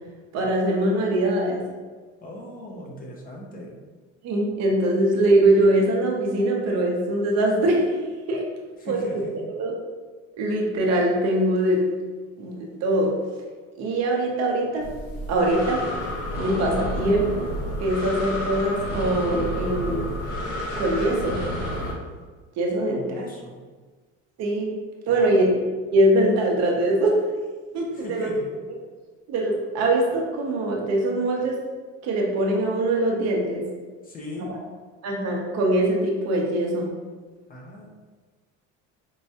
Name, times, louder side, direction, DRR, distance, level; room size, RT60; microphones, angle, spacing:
voice 1, 0.3-1.6 4.2-8.0 8.3-8.4 8.8-9.0 9.5-9.7 10.4-11.8 12.4-13.1 13.8-14.9 15.3-15.8 16.4-17.5 17.8-20.0 20.8-21.4 22.6-23.0 24.4-24.7 25.1-25.6 25.9-27.2 27.7-28.3 29.3-31.6 32.0-33.6 34.4-34.6 35.0-36.9, right 1 dB, 55° right, -1 dB, 0.7 m, -22 dB
voice 2, 2.2-3.8 8.8-9.5 22.8-23.6 25.1-25.4 27.9-28.5 34.0-34.5 37.5-37.9, left 1 dB, 30° left, -1 dB, 0.5 m, -38 dB
Breathing, 14.8-21.9, equal, 55° left, 0.8 m, -30 dB
4.6 x 2.1 x 2.8 m, 1.4 s
cardioid pair, 140°, 31 cm